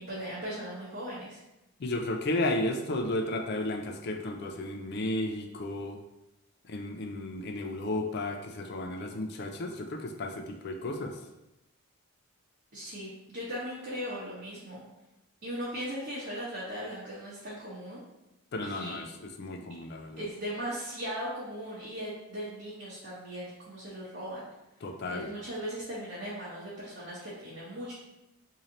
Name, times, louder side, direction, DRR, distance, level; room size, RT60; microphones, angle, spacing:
voice 1, 0.0-1.4 12.7-14.8 15.4-18.0 18.6-19.0 20.2-24.4 25.1-27.9, equal, 50° right, -9 dB, 0.9 m, -38 dB
voice 2, 1.8-6.0 6.7-11.2 18.5-19.1 19.4-20.2 24.8-25.3, left 1 dB, 50° left, 4 dB, 0.4 m, -33 dB
3.2 x 2.8 x 3.8 m, 0.94 s
head